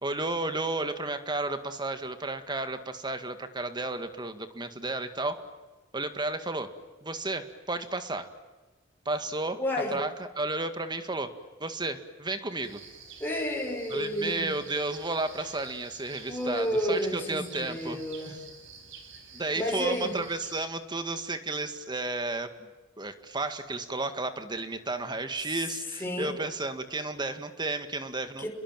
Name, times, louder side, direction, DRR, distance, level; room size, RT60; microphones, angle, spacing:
voice 1, 0.0-5.5 5.9-6.7 7.0-8.3 9.1-9.6 9.9-11.3 11.6-12.8 13.9-18.0 18.3-18.4 19.3-22.5 23.0-28.5, right 2 dB, 20° right, 9 dB, 2.1 m, -32 dB
voice 2, 9.6-10.0 13.2-14.5 16.3-18.4 19.6-20.1 26.0-26.3 28.4-28.5, equal, 10° left, 0 dB, 5.2 m, -30 dB
sound 1, 12.6-20.6, right 5 dB, 70° right, 5.3 m, -49 dB
30.0 x 22.0 x 9.2 m, 1.2 s
head